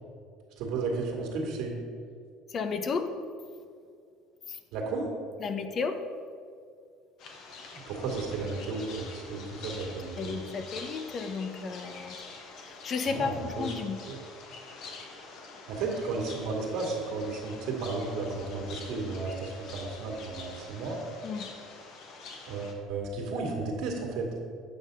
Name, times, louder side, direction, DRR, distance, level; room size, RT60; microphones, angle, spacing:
voice 1, 0.6-1.8 4.7-5.1 7.7-10.4 13.1-13.7 14.1-14.2 15.7-21.0 22.5-24.3, right 3 dB, 70° right, 0 dB, 2.1 m, -33 dB
voice 2, 2.5-3.1 4.5-4.6 5.4-6.0 10.2-12.2 12.6-14.0 21.2-21.5, left 5 dB, 45° left, 8 dB, 0.7 m, -33 dB
sound 1, 7.2-22.7, left 4 dB, 60° left, 1.4 m, -46 dB
8.7 x 5.6 x 5.2 m, 2.3 s
supercardioid pair, 90°, 0 cm